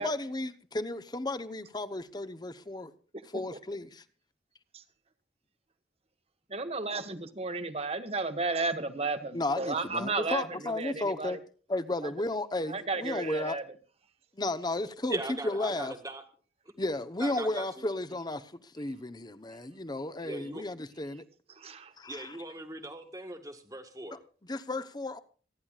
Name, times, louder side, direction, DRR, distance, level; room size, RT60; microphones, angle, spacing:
voice 1, 0.0-2.9 3.3-4.0 9.3-11.4 11.7-13.6 14.3-15.9 16.8-21.2 22.0-22.4 24.1-25.2, left 2 dB, 25° left, 0.9 m, -34 dB
voice 2, 6.5-10.4 10.8-11.4 12.0-12.1 12.7-13.6 21.6-21.9, right 3 dB, 35° right, 1.3 m, -33 dB
voice 3, 15.1-16.2 17.2-17.9 20.2-20.6 22.1-24.2, right 2 dB, 20° right, 1.6 m, -39 dB
26.5 x 10.5 x 2.4 m
head